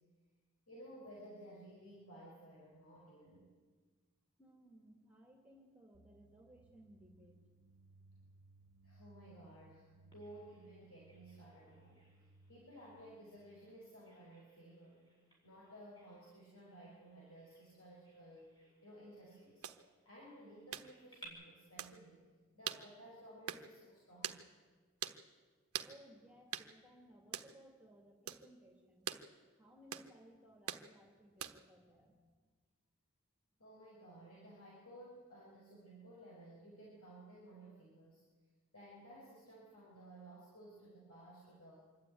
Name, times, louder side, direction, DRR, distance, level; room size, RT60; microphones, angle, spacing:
voice 1, 0.7-3.5 8.8-12.0 12.5-15.0 15.4-19.7 20.1-22.2 22.5-24.5 33.6-38.2 38.7-41.8, right 1 dB, 85° left, -5 dB, 5.4 m, -56 dB
voice 2, 4.4-7.4 25.8-29.1 29.6-32.2, right 1 dB, 5° right, 1 dB, 2.4 m, -61 dB
sound 1, 5.9-13.7, right 2 dB, 55° right, 0.7 m, -65 dB
Bird vocalization bird call bird song, 10.1-21.3, right 1 dB, 20° left, 4.7 m, -66 dB
sound 2, 19.6-19.8 20.7-20.9 21.8-21.9 22.7-22.8 23.5-23.7 24.2-24.4 25.0-25.2 25.7-25.9 26.5-26.7 27.3-27.5 28.3-28.4 29.1-29.2 29.9-30.1 30.7-30.9 31.4-31.7, right 9 dB, 85° right, 1.1 m, -42 dB
26.0 x 12.5 x 9.4 m, 1.5 s
head